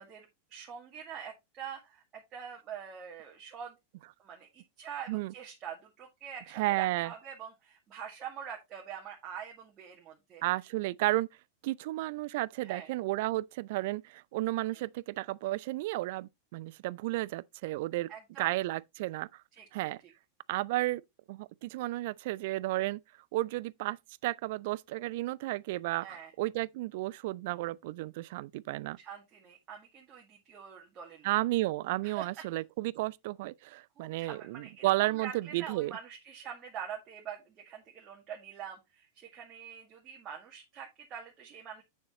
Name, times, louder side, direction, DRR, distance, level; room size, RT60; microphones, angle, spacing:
voice 1, 0.0-3.8 4.2-10.4 12.6-12.9 14.7-14.8 18.1-18.5 19.5-19.7 20.0-20.1 26.0-26.3 29.0-31.3 32.0-32.4 34.0-41.8, right 8 dB, 30° right, 1.9 m, -45 dB
voice 2, 6.5-7.1 10.4-11.3 11.6-18.1 18.4-19.4 19.7-20.0 20.5-21.0 21.3-23.0 23.3-24.0 24.2-29.0 31.2-35.9, right 18 dB, 50° right, 0.4 m, -32 dB
8.5 x 7.0 x 3.0 m
figure-of-eight pair, 90°, 0 cm